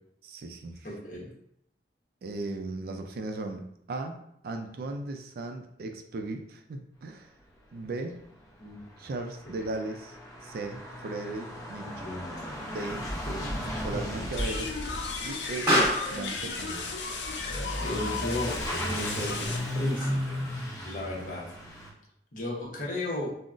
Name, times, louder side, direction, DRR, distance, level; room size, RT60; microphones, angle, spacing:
voice 1, 0.2-0.9 2.2-3.6 3.9-4.2 4.4-7.3 7.7-8.2 9.0-10.2 10.4-12.1 12.6-13.1 13.6-14.7 15.2-15.8 16.1-16.9, right 2 dB, 55° right, 5 dB, 0.3 m, -37 dB
voice 2, 0.8-1.3 8.6-8.8 11.8-12.2 13.3-14.3 17.8-18.5 18.9-20.4 20.8-21.4 22.3-23.3, left 1 dB, 50° left, -4 dB, 0.9 m, -35 dB
Truck / Accelerating revving vroom, 8.2-8.3 8.5-21.9, equal, 20° left, 0.5 m, -36 dB
Explosion, 11.5-20.5, equal, 15° right, 1.3 m, -34 dB
sound 1, 14.4-19.6, left 4 dB, 80° left, 0.5 m, -35 dB
3.7 x 2.0 x 2.4 m, 0.74 s
head